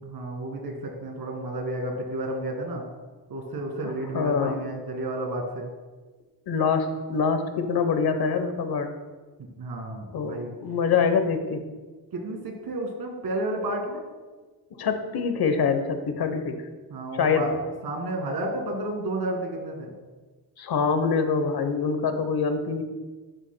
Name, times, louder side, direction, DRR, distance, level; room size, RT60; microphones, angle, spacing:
voice 1, 0.0-2.9 3.3-5.7 9.6-10.6 12.1-14.0 16.9-19.9, right 1 dB, 75° right, 2 dB, 2.0 m, -31 dB
voice 2, 3.8-4.5 6.5-8.9 10.1-11.6 14.8-16.6 17.2-17.5 20.6-22.8, left 5 dB, 70° left, 7 dB, 1.0 m, -25 dB
11.5 x 8.0 x 2.2 m, 1.3 s
cardioid pair, 105°, 38 cm